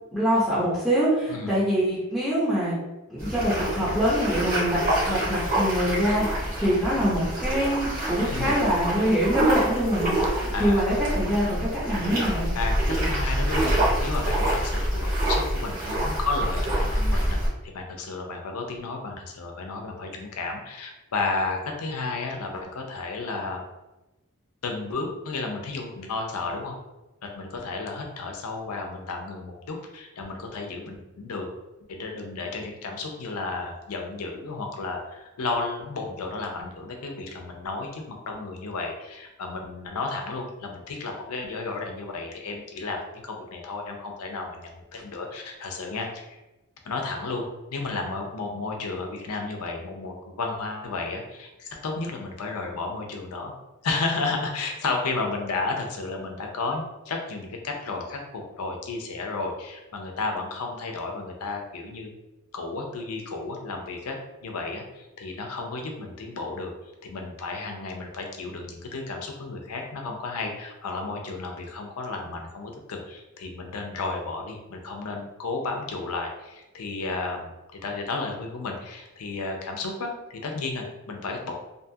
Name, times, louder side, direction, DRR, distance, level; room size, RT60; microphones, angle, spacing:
voice 1, 0.1-2.8 3.1-12.5, equal, ahead, -10 dB, 0.6 m, -24 dB
voice 2, 1.3-1.6 8.2-8.5 10.5-10.8 12.5-23.6 24.6-26.7 27.2-31.5 31.9-46.4 46.8-53.5 53.8-62.1 62.5-66.7 67.0-81.6, left 3 dB, 80° left, 2 dB, 0.5 m, -33 dB
sound 1, 3.2-17.5, right 1 dB, 40° right, 1.0 m, -26 dB
2.6 x 2.3 x 2.7 m, 1.0 s
head